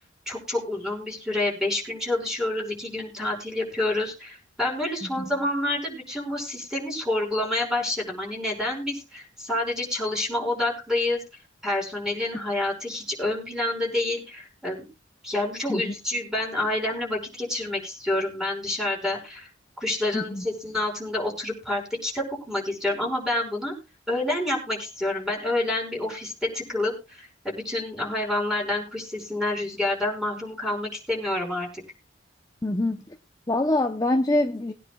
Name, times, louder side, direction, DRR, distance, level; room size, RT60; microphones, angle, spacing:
voice 1, 0.3-11.2 11.6-14.9 15.2-19.5 19.8-23.7 24.1-31.7, left 2 dB, 5° right, 5.5 m, -28 dB
voice 2, 20.1-20.5 32.6-33.0 33.5-34.7, left 1 dB, 20° left, 0.7 m, -25 dB
21.0 x 10.0 x 2.3 m
head